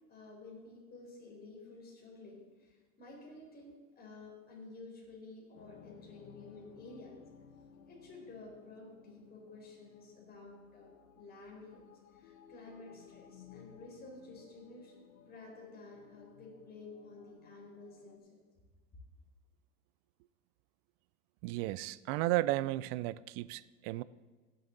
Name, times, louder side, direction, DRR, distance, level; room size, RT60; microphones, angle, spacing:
voice 1, 0.1-7.1 7.9-11.8 12.1-18.4 18.9-19.0, left 3 dB, 25° left, -3 dB, 4.2 m, -52 dB
sound 1, 5.5-18.2, left 8 dB, 80° left, 1.1 m, -58 dB
voice 2, 21.4-24.0, right 17 dB, 50° right, 18 dB, 0.5 m, -34 dB
16.5 x 7.8 x 3.9 m, 1.4 s
supercardioid pair, 115°, 40 cm